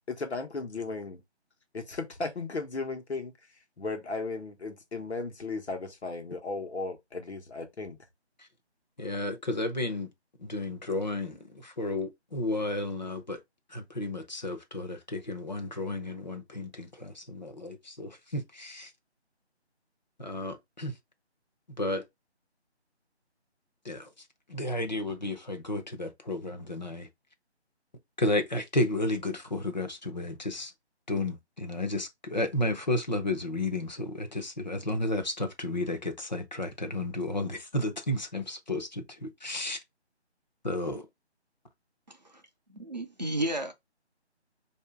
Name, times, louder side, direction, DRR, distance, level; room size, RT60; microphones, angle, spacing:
voice 1, 0.2-1.2 1.7-3.3 3.8-8.0, left 3 dB, 70° left, 1.2 m, -35 dB
voice 2, 9.0-10.1 10.4-13.4 13.7-18.9 20.2-20.9 21.8-22.0 23.8-24.1 24.5-27.1 28.2-30.7 31.1-39.8 40.6-41.1, left 1 dB, 40° left, 0.8 m, -32 dB
voice 3, 42.7-43.7, right 1 dB, 40° right, 0.6 m, -32 dB
4.7 x 2.7 x 3.4 m
figure-of-eight pair, 175°, 34 cm